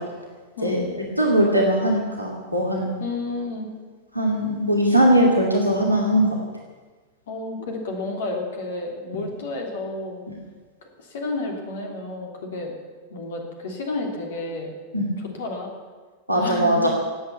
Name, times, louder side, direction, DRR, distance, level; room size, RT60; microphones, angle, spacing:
voice 1, 1.2-2.9 4.1-6.4 14.9-15.1 16.3-16.9, right 1 dB, 90° left, -1 dB, 2.5 m, -20 dB
voice 2, 3.0-3.7 7.3-10.2 11.0-12.7 13.1-14.7 15.2-15.7 16.3-16.9, left 2 dB, 60° left, 2 dB, 3.2 m, -31 dB
17.5 x 8.5 x 9.7 m, 1.4 s
figure-of-eight pair, 90°, 0 cm